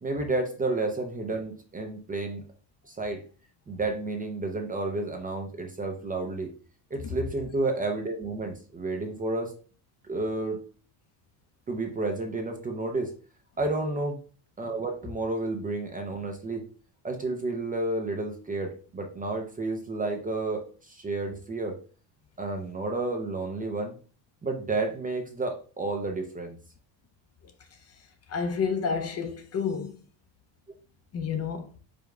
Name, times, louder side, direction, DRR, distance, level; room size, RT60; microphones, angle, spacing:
voice 1, 0.0-2.4 2.9-3.2 3.7-6.5 6.9-9.5 10.1-10.6 11.7-13.1 13.6-14.2 14.6-16.6 17.0-21.8 22.4-23.9 24.4-26.6, right 2 dB, 20° right, 0.5 m, -31 dB
voice 2, 28.3-30.0 31.1-31.7, left 6 dB, 35° left, 0.5 m, -29 dB
5.1 x 2.2 x 4.7 m
cardioid pair, 150°, 44 cm